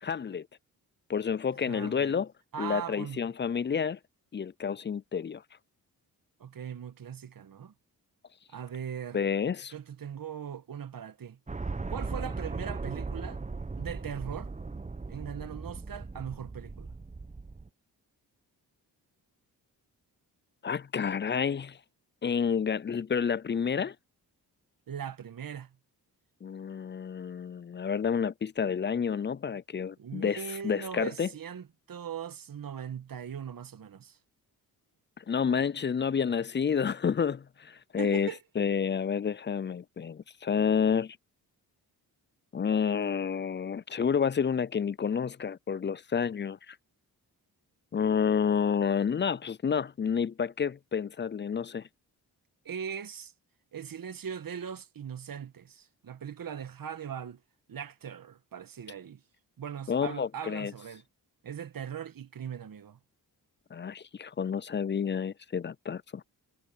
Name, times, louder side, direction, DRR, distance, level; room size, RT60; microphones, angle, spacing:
voice 1, 0.0-0.5 1.1-2.3 2.6-4.0 4.3-5.4 9.1-9.7 20.6-21.8 22.2-23.9 26.4-31.3 35.2-41.2 42.5-46.8 47.9-51.9 59.9-60.7 63.7-66.2, left 6 dB, 30° left, 0.5 m, -29 dB
voice 2, 1.7-2.1 2.5-3.2 6.4-7.7 8.5-9.2 9.7-11.4 11.9-13.4 13.8-14.5 15.1-17.0 24.9-25.7 30.0-34.2 38.0-38.4 52.6-53.3 53.7-57.4 57.7-59.2 59.6-61.0 61.4-63.0, right 8 dB, 55° right, 1.5 m, -40 dB
sound 1, 11.5-17.7, right 3 dB, 20° right, 0.9 m, -38 dB
supercardioid pair, 50°, 40 cm